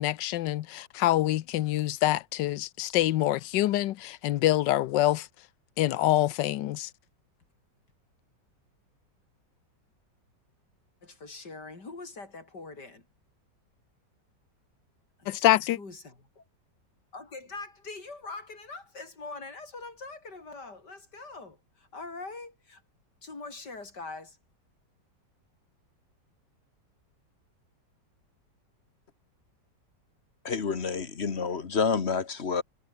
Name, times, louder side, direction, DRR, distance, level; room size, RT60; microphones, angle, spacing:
voice 1, 0.0-5.3 5.8-6.9 15.3-15.8, left 14 dB, 80° left, 1.3 m, -26 dB
voice 2, 11.0-13.1 15.2-15.5 15.7-16.4 17.1-22.8 23.2-24.4, left 3 dB, 65° left, 4.9 m, -43 dB
voice 3, 30.4-32.6, left 5 dB, 40° left, 1.6 m, -28 dB
omnidirectional pair, 1.9 m